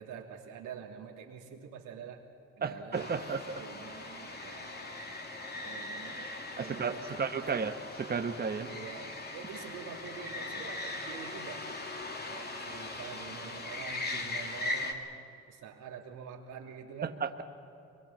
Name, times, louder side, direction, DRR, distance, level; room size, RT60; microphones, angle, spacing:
voice 1, 0.0-2.2 2.6-4.9 5.5-6.3 6.6-7.6 8.6-11.8 12.2-15.1 15.5-17.2, right 7 dB, 90° right, 1 dB, 3.0 m, -46 dB
voice 2, 2.6-3.6 6.6-7.7 8.0-8.7 17.0-17.4, right 5 dB, 30° right, 6 dB, 1.2 m, -33 dB
sound 1, 2.9-14.9, left 2 dB, 35° left, 2.6 m, -40 dB
24.5 x 22.5 x 7.4 m, 2.7 s
cardioid pair, 90°, 30 cm